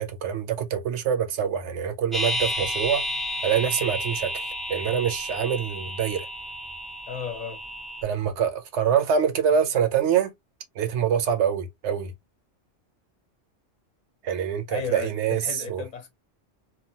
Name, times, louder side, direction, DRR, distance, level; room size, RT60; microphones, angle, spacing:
voice 1, 0.0-3.0 3.4-6.3 8.0-10.3 10.8-12.1 14.2-15.8, right 8 dB, 70° right, 1.0 m, -25 dB
sound 1, 2.1-8.0, left 1 dB, ahead, 0.4 m, -31 dB
voice 2, 7.1-7.6 14.7-16.1, left 6 dB, 40° left, 0.8 m, -34 dB
2.8 x 2.3 x 2.7 m
omnidirectional pair, 1.2 m